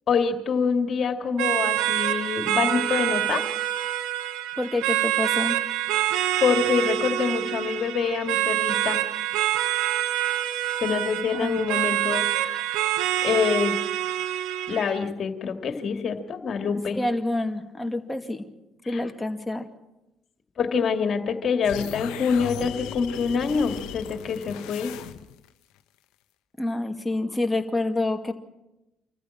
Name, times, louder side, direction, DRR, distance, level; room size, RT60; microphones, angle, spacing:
voice 1, 0.1-3.4 6.4-9.0 10.8-12.7 13.2-13.8 14.7-17.0 20.6-24.9, left 6 dB, 50° left, 6 dB, 2.5 m, -25 dB
sound 1, 1.4-15.0, right 13 dB, 75° right, 0.9 m, -26 dB
voice 2, 4.6-5.6 11.3-11.7 16.6-18.5 18.9-19.7 26.6-28.3, left 2 dB, 15° left, 5 dB, 2.3 m, -28 dB
sound 2, 21.6-25.5, left 10 dB, 75° left, 1.0 m, -37 dB
26.0 x 14.5 x 7.4 m, 0.94 s
hypercardioid pair, 55°, 0 cm